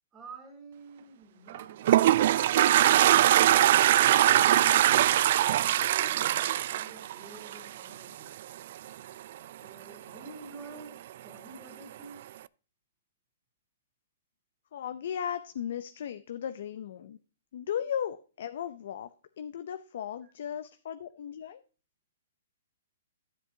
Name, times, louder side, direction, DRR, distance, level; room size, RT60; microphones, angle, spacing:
voice 1, 0.1-2.6 4.4-8.3 9.6-12.3 20.2-20.3, right 4 dB, 15° right, 2 dB, 2.7 m, -50 dB
Toilet flush, 1.5-7.9, right 12 dB, 55° right, 0.3 m, -22 dB
voice 2, 14.7-17.2 17.5-19.1 19.4-21.6, left 9 dB, 65° left, 11 dB, 0.6 m, -36 dB
12.5 x 7.7 x 2.7 m, 0.37 s
hypercardioid pair, 145°, 0 cm